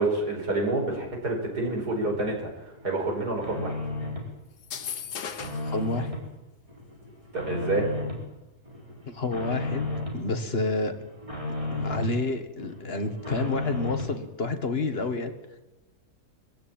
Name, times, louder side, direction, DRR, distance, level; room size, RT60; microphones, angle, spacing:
voice 1, 0.0-3.7 7.3-7.9, right 2 dB, 90° right, 0 dB, 5.6 m, -28 dB
sound 1, 1.5-2.3 2.7-4.3 4.7-6.3 6.7-8.2 8.6-10.2 10.6-12.2 12.6-14.2, left 2 dB, 20° right, 4.4 m, -34 dB
sound 2, 4.6-5.8, left 7 dB, 85° left, 1.8 m, -36 dB
voice 2, 5.6-6.1 9.1-10.9 11.7-15.3, left 3 dB, 40° left, 7 dB, 2.0 m, -29 dB
22.0 x 15.0 x 8.9 m, 1.0 s
omnidirectional pair, 1.7 m